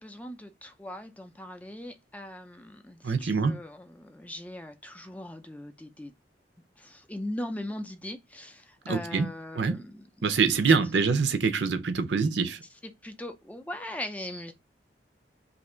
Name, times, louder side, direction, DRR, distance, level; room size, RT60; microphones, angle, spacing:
voice 1, 0.0-6.1 6.8-10.6 12.4-12.5 12.8-14.5, left 1 dB, 10° left, 0.4 m, -40 dB
voice 2, 3.0-3.6 8.9-9.3 9.6-9.8 10.2-12.6, right 5 dB, 75° right, 0.6 m, -25 dB
2.8 x 2.6 x 4.3 m
head